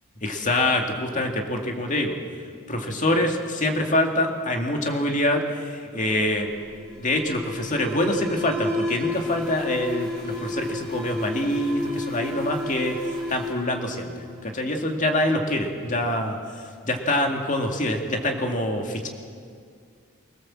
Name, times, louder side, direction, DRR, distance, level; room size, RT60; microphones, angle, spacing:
voice 1, 0.2-2.2 2.7-6.5 6.9-14.1 14.5-16.4 16.8-19.1, left 1 dB, 35° left, 3 dB, 2.1 m, -25 dB
Alarm, 6.1-14.7, left 1 dB, 5° left, 6.2 m, -32 dB
24.5 x 17.0 x 7.5 m, 2.2 s
head